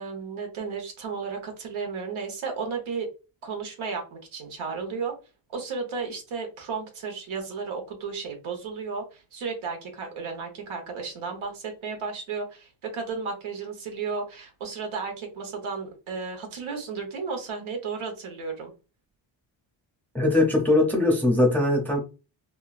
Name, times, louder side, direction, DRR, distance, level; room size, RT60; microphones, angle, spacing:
voice 1, 0.0-3.1 3.4-5.1 5.5-18.7, right 5 dB, 85° right, 3 dB, 1.2 m, -33 dB
voice 2, 20.1-22.0, left 2 dB, 5° left, 0 dB, 0.5 m, -21 dB
3.5 x 2.3 x 2.4 m, 0.31 s
wide cardioid pair, 155°, 47 cm